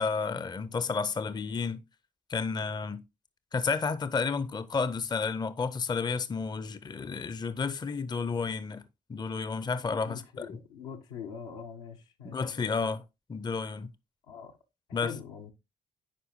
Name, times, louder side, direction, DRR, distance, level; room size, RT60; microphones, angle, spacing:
voice 1, 0.0-1.8 2.3-3.0 3.5-8.8 9.1-10.2 12.2-13.0 13.3-13.9 14.9-15.1, left 5 dB, 20° left, 0.5 m, -31 dB
voice 2, 10.0-12.4 14.3-14.6 14.9-15.5, left 7 dB, 75° left, 0.8 m, -43 dB
10.0 x 4.8 x 3.0 m
figure-of-eight pair, 40°, 21 cm